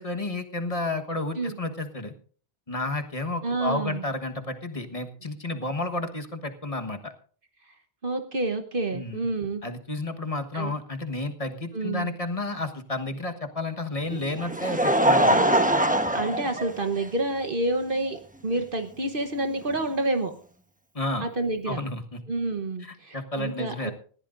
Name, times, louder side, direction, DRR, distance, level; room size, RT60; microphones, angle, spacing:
voice 1, 0.0-2.1 2.7-7.1 8.9-9.2 9.6-15.5 20.9-21.3 21.7-22.2 22.8-23.9, left 2 dB, 35° left, 6 dB, 1.4 m, -31 dB
voice 2, 3.4-4.0 8.0-9.6 10.5-10.7 11.7-12.1 16.1-20.3 21.2-21.8 22.3-23.9, right 2 dB, 55° right, 7 dB, 1.3 m, -28 dB
Laughter, 14.1-17.3 18.1-18.2 19.7-19.8, right 1 dB, 10° right, 1.0 m, -23 dB
19.5 x 15.0 x 2.6 m, 0.43 s
omnidirectional pair, 1.1 m